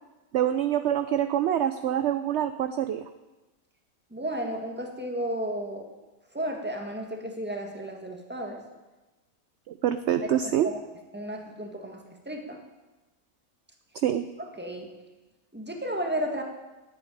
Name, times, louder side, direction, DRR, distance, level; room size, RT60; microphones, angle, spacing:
voice 1, 0.3-3.0 9.7-10.7 14.0-14.3, right 10 dB, 65° right, 10 dB, 0.7 m, -25 dB
voice 2, 4.1-5.8 6.3-8.6 10.2-10.8 11.1-12.6 14.5-14.9 15.5-16.4, right 1 dB, 5° right, 2 dB, 1.6 m, -33 dB
10.5 x 8.5 x 9.7 m, 1.1 s
omnidirectional pair, 1.6 m